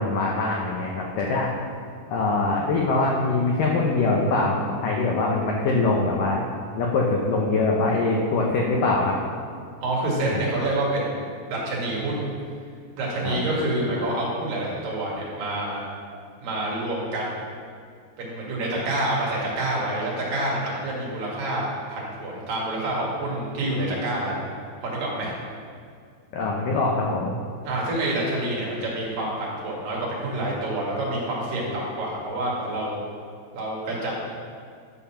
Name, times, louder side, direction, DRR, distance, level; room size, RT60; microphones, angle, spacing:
voice 1, 0.0-1.5 2.1-6.5 6.8-9.2 10.2-10.5 13.2-13.4 26.3-27.3, left 3 dB, 85° left, -1 dB, 1.9 m, -23 dB
voice 2, 9.8-12.3 13.0-15.8 16.4-17.4 18.2-24.5 24.8-25.3 27.6-33.0 33.5-34.1, right 1 dB, 55° right, -4 dB, 3.3 m, -27 dB
11.0 x 6.8 x 5.8 m, 2.2 s
omnidirectional pair, 5.3 m